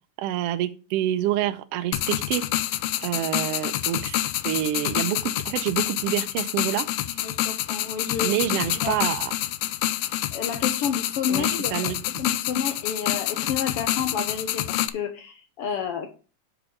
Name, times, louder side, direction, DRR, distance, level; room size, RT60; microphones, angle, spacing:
voice 1, 0.2-2.4 3.0-6.9 8.2-9.3 11.3-12.2, right 12 dB, 85° right, 10 dB, 1.3 m, -27 dB
sound 1, 1.9-14.9, left 14 dB, 85° left, 1.4 m, -27 dB
voice 2, 7.1-9.0 10.3-16.1, left 7 dB, 65° left, 7 dB, 1.5 m, -30 dB
6.0 x 5.1 x 6.1 m, 0.35 s
omnidirectional pair, 3.3 m